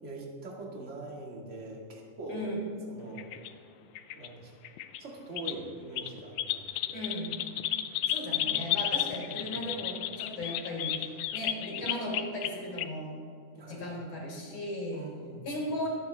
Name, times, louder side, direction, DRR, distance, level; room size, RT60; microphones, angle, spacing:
voice 1, 0.0-2.5 2.9-3.3 4.1-4.5 5.0-7.1 8.3-8.7 9.1-9.7 13.5-13.9 14.9-15.6, right 2 dB, 25° right, -1 dB, 1.8 m, -43 dB
voice 2, 2.3-2.6 6.9-7.4 8.1-13.1 13.7-15.0 15.4-15.9, left 1 dB, 45° left, -3 dB, 5.1 m, -36 dB
sound 1, 3.2-3.5 4.0-4.3 4.6-5.0 5.4-5.5 6.0-12.5 12.8-12.9, left 12 dB, 80° left, 1.6 m, -32 dB
24.0 x 9.6 x 3.4 m, 2.4 s
omnidirectional pair, 4.0 m